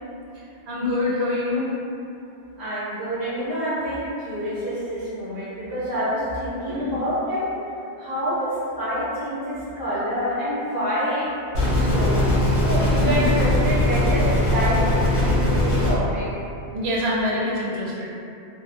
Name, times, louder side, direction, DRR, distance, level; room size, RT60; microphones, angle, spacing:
voice 1, 0.7-1.7 6.7-7.0 12.9-13.3 16.7-18.1, left 1 dB, 75° right, -5 dB, 0.8 m, -25 dB
voice 2, 2.6-7.5 8.0-12.3 12.6-16.3, equal, 20° right, -12 dB, 0.9 m, -27 dB
sound 1, 11.5-15.9, left 1 dB, 75° left, 0.9 m, -20 dB
2.3 x 2.2 x 2.5 m, 2.7 s
omnidirectional pair, 1.1 m